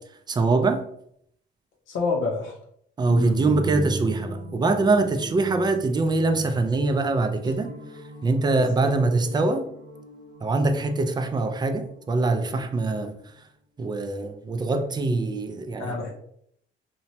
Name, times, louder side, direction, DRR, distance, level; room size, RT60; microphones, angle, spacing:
voice 1, 0.3-0.8 3.0-7.7 8.2-9.7 10.4-13.1 13.8-16.0, right 3 dB, 20° right, 0.3 m, -23 dB
voice 2, 1.9-2.6 3.1-3.4 8.6-8.9 15.8-16.1, left 3 dB, 80° left, 0.6 m, -28 dB
sound 1, 3.0-12.9, right 1 dB, 70° right, 0.8 m, -38 dB
3.0 x 2.2 x 2.7 m
cardioid pair, 90°, 20 cm